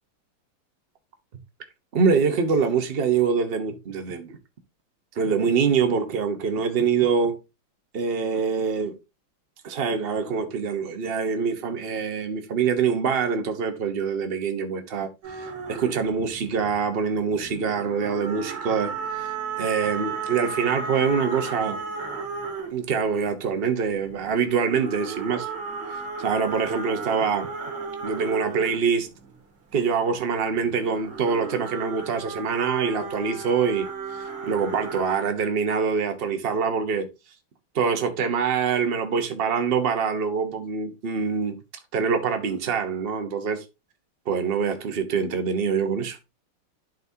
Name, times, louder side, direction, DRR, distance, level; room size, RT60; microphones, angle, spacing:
voice 1, 1.9-4.4 5.2-7.4 7.9-9.0 9.6-15.1 15.4-21.8 22.7-25.5 25.9-27.5 28.0-29.1 29.7-33.9 34.4-37.1 37.7-41.6 41.9-43.6 44.3-46.3, right 6 dB, 40° right, 0.8 m, -25 dB
sound 1, 15.2-17.0 17.3-23.0 23.7-29.4 30.4-35.0, right 5 dB, 70° right, 2.4 m, -34 dB
11.5 x 4.0 x 2.8 m
omnidirectional pair, 2.3 m